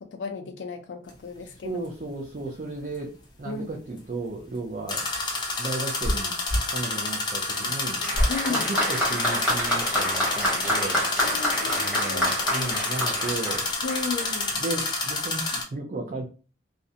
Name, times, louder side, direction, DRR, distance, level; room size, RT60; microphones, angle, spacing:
voice 1, 0.0-1.9 3.4-3.7 8.3-8.7 11.2-12.7 13.8-14.5, left 4 dB, 80° left, 5 dB, 0.4 m, -34 dB
sound 1, 1.1-1.2 4.9-15.6, left 3 dB, 25° left, 0.4 m, -29 dB
voice 2, 1.6-3.1 3.4-5.1 5.6-6.3 6.7-8.0 8.5-11.1 11.7-13.7 14.5-16.3, right 2 dB, 45° right, -1 dB, 0.4 m, -34 dB
sound 2, 4.8-6.7 8.1-8.4 9.0-9.7, equal, 75° right, 1.0 m, -28 dB
Applause, 8.0-14.5, left 1 dB, 5° right, 0.9 m, -27 dB
2.5 x 2.1 x 2.6 m, 0.35 s
head